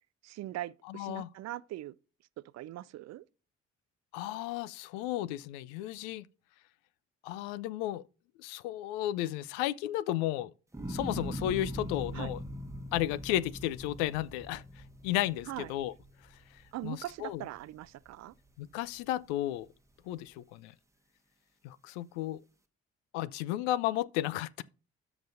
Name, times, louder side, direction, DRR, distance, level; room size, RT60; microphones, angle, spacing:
voice 1, 0.2-1.9 2.5-3.2 12.1-12.3 15.5-15.7 16.7-18.3, right 15 dB, 50° right, 0.5 m, -41 dB
voice 2, 0.9-1.3 4.1-6.3 7.2-8.0 8.4-10.5 10.9-12.4 12.9-14.6 15.0-15.9 16.8-17.4 18.6-19.7 20.1-20.7 21.6-22.4 23.1-24.6, left 14 dB, 75° left, 0.5 m, -33 dB
sound 1, 10.7-17.1 17.5-18.1, equal, 10° right, 1.1 m, -41 dB
12.5 x 5.9 x 2.6 m
hypercardioid pair, 45°, 33 cm